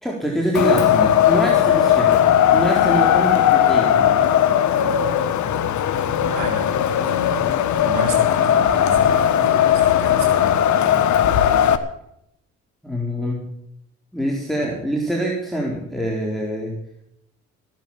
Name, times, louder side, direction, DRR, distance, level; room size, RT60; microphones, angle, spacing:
voice 1, 0.0-4.4 12.8-13.5 14.1-16.8, equal, ahead, -2 dB, 3.9 m, -25 dB
Wind, 0.5-11.8, left 10 dB, 70° left, 1.5 m, -17 dB
voice 2, 6.3-7.5 7.8-10.6, right 2 dB, 90° right, -3 dB, 5.1 m, -32 dB
16.0 x 10.5 x 7.3 m, 0.76 s
cardioid pair, 90°, 30 cm